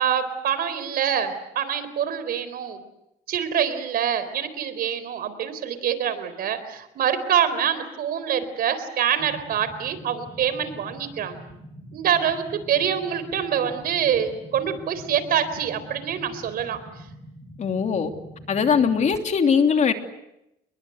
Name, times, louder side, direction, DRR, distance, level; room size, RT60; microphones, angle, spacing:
voice 1, 0.0-2.8 3.3-11.3 11.9-16.8, right 8 dB, 60° right, 13 dB, 4.1 m, -25 dB
sound 1, 9.2-19.2, equal, 15° left, 6.6 m, -44 dB
voice 2, 17.6-18.1 18.5-19.9, left 6 dB, 45° left, 5 dB, 3.1 m, -20 dB
29.5 x 22.5 x 8.0 m, 0.86 s
cardioid pair, 110°, 17 cm